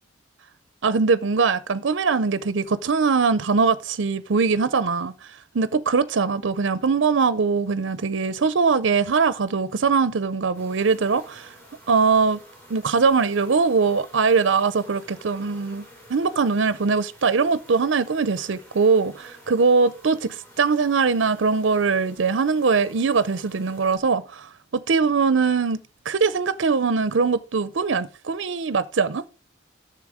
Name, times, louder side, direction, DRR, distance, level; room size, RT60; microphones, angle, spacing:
voice 1, 0.8-11.5 11.9-12.4 12.7-15.8 16.1-25.8 26.1-29.2, right 5 dB, 80° right, 0.6 m, -21 dB
sound 1, 10.5-23.9, right 1 dB, 10° left, 4.4 m, -49 dB
10.5 x 7.0 x 4.9 m
head